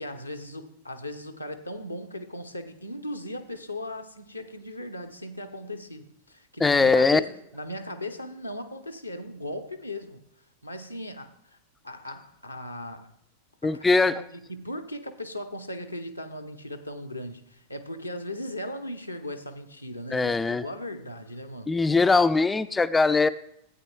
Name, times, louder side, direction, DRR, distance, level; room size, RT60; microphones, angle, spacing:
voice 1, 0.0-10.2 10.6-11.6 11.8-13.1 13.6-21.8, left 1 dB, 85° left, 0.7 m, -38 dB
voice 2, 6.6-7.2 13.6-14.2 20.1-20.7 21.7-23.3, left 3 dB, 10° left, 0.3 m, -21 dB
15.0 x 8.7 x 2.3 m
figure-of-eight pair, 90°, 0 cm